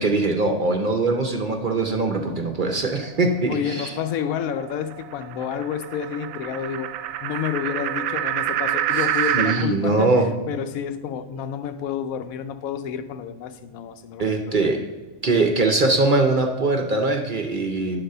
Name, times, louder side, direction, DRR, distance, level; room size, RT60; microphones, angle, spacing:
voice 1, 0.0-3.9 9.3-10.3 14.2-14.8 15.2-18.0, right 3 dB, 50° right, 4 dB, 0.7 m, -22 dB
sound 1, 2.9-9.7, right 11 dB, 80° right, 1.0 m, -28 dB
voice 2, 3.5-6.9 7.2-14.6, left 8 dB, 90° left, 9 dB, 1.1 m, -29 dB
10.0 x 4.0 x 6.6 m, 1.2 s
omnidirectional pair, 1.4 m